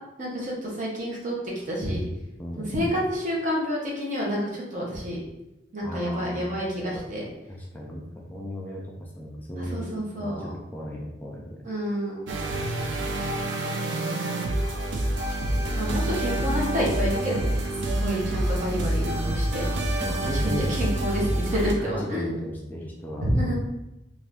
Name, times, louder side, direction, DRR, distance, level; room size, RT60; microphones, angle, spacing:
voice 1, 0.2-2.0 2.7-5.2 5.7-7.2 9.6-10.5 11.6-12.4 15.8-17.5 18.0-19.7 20.3-22.3 23.2-23.6, equal, 45° right, -3 dB, 0.9 m, -28 dB
voice 2, 2.4-2.7 5.8-6.6 7.5-8.0 8.3-9.9 10.2-11.6 15.5-16.1 20.0-20.7 21.8-23.6, equal, 10° left, -3 dB, 0.4 m, -35 dB
sound 1, 12.3-21.7, right 1 dB, 85° right, 0.4 m, -27 dB
2.6 x 2.5 x 3.4 m, 0.93 s
head